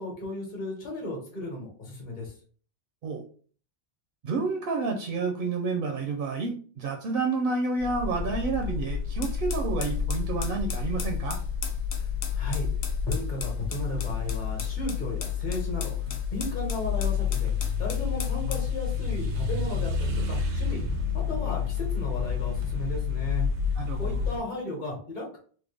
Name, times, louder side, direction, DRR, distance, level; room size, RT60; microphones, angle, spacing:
voice 1, 0.0-2.3 12.0-12.1 12.3-12.7 13.1-17.5 17.8-20.8 21.3-23.5 24.0-25.4, left 1 dB, 45° left, -1 dB, 1.2 m, -35 dB
voice 2, 4.2-11.4 23.8-24.1, right 4 dB, 65° right, 2 dB, 0.7 m, -29 dB
sound 1, 7.8-24.4, left 6 dB, 90° right, 0.9 m, -29 dB
sound 2, 9.2-18.7, left 5 dB, 70° left, 0.9 m, -40 dB
3.3 x 2.1 x 3.3 m, 0.44 s
omnidirectional pair, 1.1 m